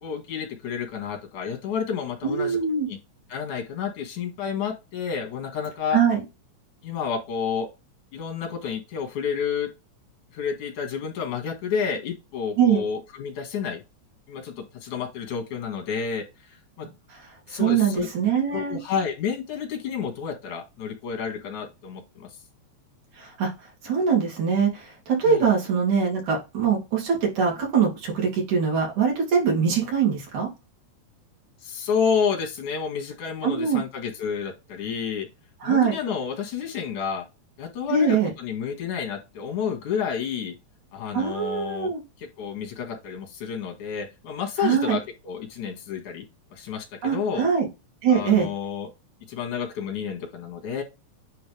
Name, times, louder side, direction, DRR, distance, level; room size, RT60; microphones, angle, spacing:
voice 1, 0.0-2.6 2.9-3.0 3.3-6.0 6.8-7.7 8.1-9.7 10.3-13.8 14.3-16.9 17.5-18.1 18.5-22.3 25.3-25.5 31.6-35.3 35.6-37.2 37.6-40.5 40.9-41.9 42.2-46.2 46.5-46.9 47.1-47.5 48.1-48.9 49.3-50.8, left 6 dB, 85° left, 3 dB, 3.3 m, -30 dB
voice 2, 2.2-2.9 5.9-6.2 12.6-12.8 17.1-18.8 23.2-23.5 23.8-30.5 33.4-33.8 35.6-35.9 37.9-38.3 41.1-42.0 44.6-45.0 47.0-47.7 48.0-48.5, right 6 dB, 80° right, -2 dB, 4.0 m, -23 dB
9.4 x 3.5 x 3.3 m, 0.25 s
omnidirectional pair, 3.3 m